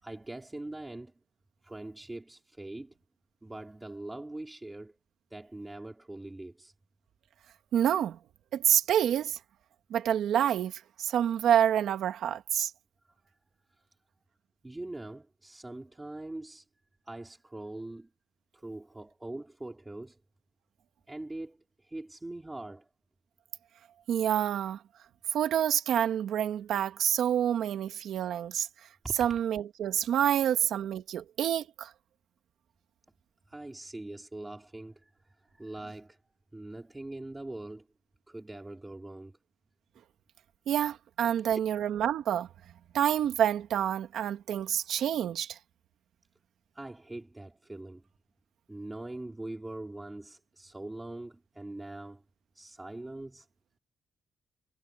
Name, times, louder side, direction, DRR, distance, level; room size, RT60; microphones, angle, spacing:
voice 1, 0.0-1.1 1.6-2.9 3.4-5.0 5.3-6.7 14.6-16.6 17.0-18.1 18.5-20.2 21.1-22.9 29.0-29.2 33.5-36.2 36.5-37.9 38.3-39.3 41.5-41.6 46.7-48.1 48.7-52.2 52.5-53.5, right 2 dB, 10° right, 4.3 m, -42 dB
voice 2, 7.7-8.2 8.5-9.4 9.9-12.7 24.1-24.8 25.3-28.7 29.2-31.9 40.7-42.5 42.9-45.6, right 10 dB, 85° right, 2.0 m, -27 dB
wide cardioid pair, 155°, 0 cm